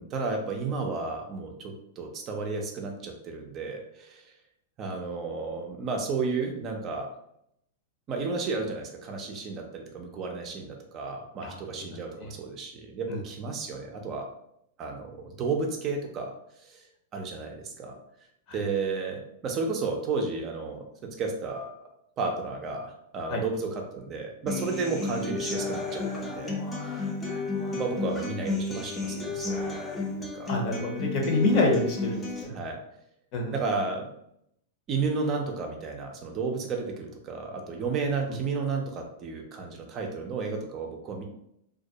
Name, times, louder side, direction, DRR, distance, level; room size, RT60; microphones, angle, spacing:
voice 1, 0.0-4.3 4.8-7.1 8.1-14.3 14.8-18.0 18.5-21.9 22.2-27.0 27.5-29.8 30.2-30.5 32.5-32.8 33.5-34.1 34.9-41.2, right 4 dB, 35° right, 2 dB, 0.5 m, -33 dB
voice 2, 11.4-11.9 12.2-12.3 13.1-13.2 18.5-18.6 23.3-23.4 30.5-32.5 33.3-33.6 38.3-38.4, left 2 dB, 45° left, 0 dB, 0.7 m, -27 dB
Human voice / Acoustic guitar, 24.5-32.4, left 3 dB, 15° left, 0.5 m, -32 dB
2.3 x 2.1 x 2.7 m, 0.74 s
hypercardioid pair, 125°, 0 cm